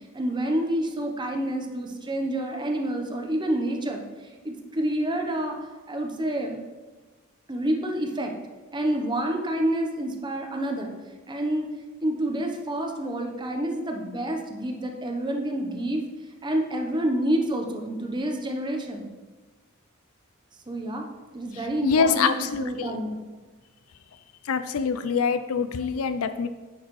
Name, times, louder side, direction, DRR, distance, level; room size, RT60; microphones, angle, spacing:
voice 1, 0.1-4.0 4.4-5.6 5.9-6.6 7.5-8.3 8.7-10.9 11.3-11.7 12.0-16.0 16.4-19.1 20.7-21.0 21.3-22.3 22.6-23.2, right 1 dB, 20° right, 3 dB, 0.8 m, -28 dB
voice 2, 21.5-22.9 24.4-26.5, left 5 dB, 70° left, 10 dB, 0.4 m, -25 dB
9.7 x 6.5 x 3.1 m, 1.2 s
head